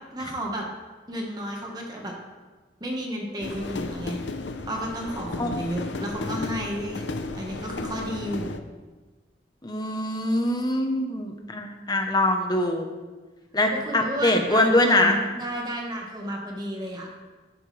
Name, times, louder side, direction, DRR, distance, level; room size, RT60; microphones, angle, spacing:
voice 1, 0.1-0.6 1.1-2.1 2.8-4.2 4.7-7.1 7.3-8.6 13.7-17.1, equal, 20° right, -1 dB, 1.4 m, -32 dB
sound 1, 3.4-8.6, left 3 dB, 80° left, 0.7 m, -34 dB
voice 2, 9.6-12.9 13.5-15.2, left 1 dB, 20° left, 4 dB, 0.9 m, -23 dB
12.0 x 8.4 x 3.3 m, 1.3 s
head